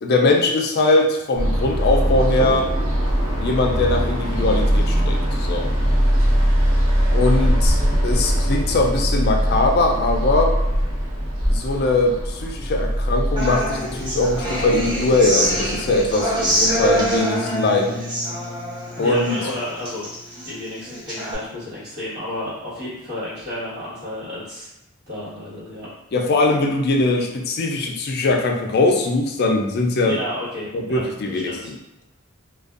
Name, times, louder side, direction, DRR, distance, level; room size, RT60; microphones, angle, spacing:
voice 1, 0.0-2.7 3.4-5.7 7.1-7.8 8.0-10.6 11.5-18.0 19.0-19.4 26.1-30.2 30.7-31.7, left 2 dB, 50° left, 2 dB, 0.4 m, -21 dB
sound 1, 1.3-17.2, equal, 90° right, 0.8 m, -22 dB
Human voice / Acoustic guitar, 13.4-21.3, right 1 dB, 20° right, 0.7 m, -25 dB
voice 2, 19.0-20.0 20.4-24.7 25.1-25.9 30.0-31.7, left 1 dB, 55° right, -9 dB, 1.3 m, -31 dB
2.5 x 2.2 x 2.4 m, 0.90 s
head